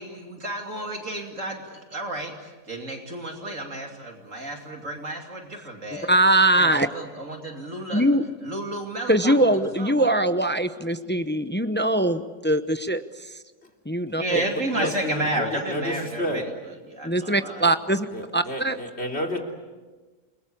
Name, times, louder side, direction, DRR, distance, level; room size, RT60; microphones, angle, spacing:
voice 1, 0.0-6.1 6.6-9.3 9.8-10.1 14.2-17.7, right 1 dB, 50° right, 2 dB, 3.0 m, -32 dB
voice 2, 6.1-6.9 7.9-8.2 9.1-13.4 13.9-14.4 14.8-14.9 17.0-18.1 18.3-18.8, right 1 dB, 10° left, 10 dB, 0.5 m, -22 dB
voice 3, 14.4-16.4 18.1-19.4, left 1 dB, 40° left, 2 dB, 3.5 m, -31 dB
29.0 x 21.5 x 8.5 m, 1.3 s
omnidirectional pair, 1.7 m